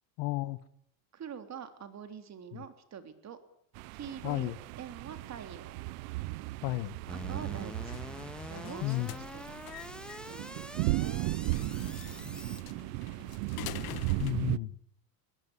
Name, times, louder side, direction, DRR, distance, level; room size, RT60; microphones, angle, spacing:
voice 1, 0.2-0.6 2.5-2.6 4.2-4.6 6.6-6.9 8.8-9.1 14.2-14.8, left 20 dB, 65° left, 1.5 m, -32 dB
voice 2, 1.1-3.4 3.9-5.8 7.1-8.0 8.5-9.8 10.3-11.5, right 8 dB, 35° right, 3.4 m, -45 dB
sound 1, 3.7-14.6, right 20 dB, 70° right, 0.9 m, -36 dB
sound 2, 7.1-12.6, left 1 dB, ahead, 1.6 m, -45 dB
sound 3, 7.8-14.3, left 15 dB, 50° left, 1.5 m, -46 dB
22.0 x 18.0 x 9.9 m
supercardioid pair, 125°, 48 cm